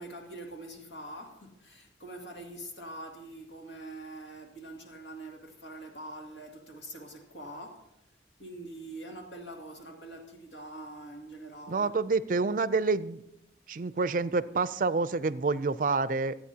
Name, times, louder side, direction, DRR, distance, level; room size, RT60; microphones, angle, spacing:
voice 1, 0.0-7.9 8.4-12.0, right 1 dB, 80° left, 2.3 m, -44 dB
voice 2, 11.7-13.2 13.7-16.4, right 4 dB, 50° right, 0.4 m, -28 dB
26.0 x 8.9 x 2.8 m
head